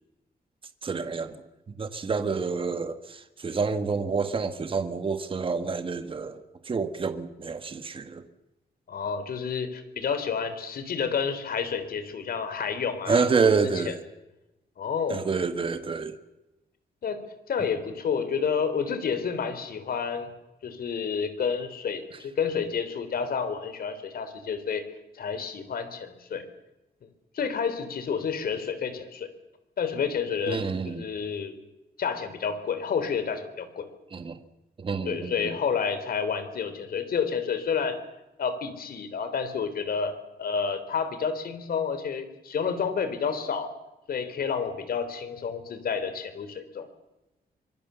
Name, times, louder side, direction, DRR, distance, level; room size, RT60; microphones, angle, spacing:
voice 1, 0.8-8.2 13.1-14.0 15.1-16.1 30.5-31.1 34.1-34.4 34.8-35.6, right 5 dB, 35° right, 9 dB, 1.6 m, -28 dB
voice 2, 8.9-13.3 13.6-13.9 14.8-15.2 17.0-17.2 17.5-20.3 20.6-24.9 25.1-26.4 27.3-29.3 29.8-31.5 32.0-33.9 35.1-38.0 38.4-43.7 44.1-46.9, left 6 dB, 65° left, 10 dB, 3.6 m, -30 dB
25.5 x 23.5 x 6.9 m, 0.97 s
wide cardioid pair, 170°, 16 cm